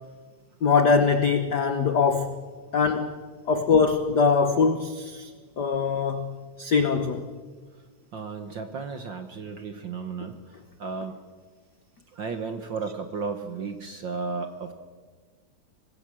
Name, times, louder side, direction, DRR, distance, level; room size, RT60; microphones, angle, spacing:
voice 1, 0.6-2.4 2.7-3.2 3.5-7.3, left 5 dB, 75° left, 8 dB, 0.9 m, -23 dB
voice 2, 8.1-11.2 12.1-14.7, right 4 dB, 55° right, 7 dB, 1.3 m, -34 dB
25.5 x 20.0 x 7.6 m, 1.5 s
omnidirectional pair, 3.5 m